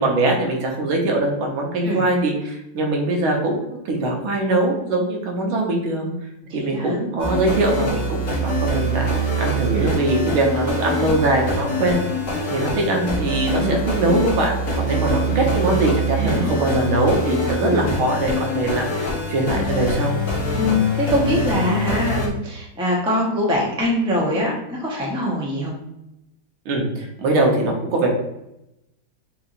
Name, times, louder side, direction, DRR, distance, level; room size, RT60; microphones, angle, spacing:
voice 1, 0.0-6.1 6.5-12.0 12.5-20.2 26.7-28.1, right 2 dB, 85° right, -1 dB, 1.9 m, -22 dB
voice 2, 6.4-7.0 9.7-10.0 13.6-13.8 14.9-15.8 16.1-16.5 17.6-17.9 20.5-25.7, left 1 dB, 5° right, -3 dB, 0.3 m, -23 dB
sound 1, 7.2-22.3, equal, 45° left, 1.3 m, -24 dB
6.8 x 3.0 x 2.5 m, 0.85 s
omnidirectional pair, 2.2 m